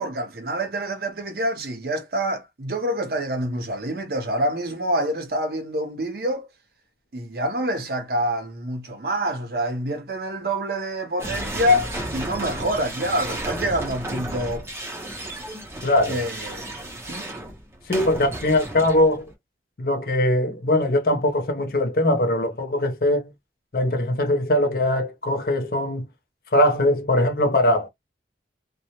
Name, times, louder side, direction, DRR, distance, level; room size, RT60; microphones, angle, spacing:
voice 1, 0.0-6.5 7.1-14.7 16.1-16.7 17.1-17.2, equal, 55° right, 0.7 m, -26 dB
sound 1, 11.2-19.3, right 1 dB, 15° right, 0.5 m, -33 dB
voice 2, 15.8-16.2 17.9-19.2 19.8-23.3 23.7-26.1 26.5-27.9, left 1 dB, 55° left, 0.6 m, -21 dB
2.2 x 2.0 x 2.8 m
head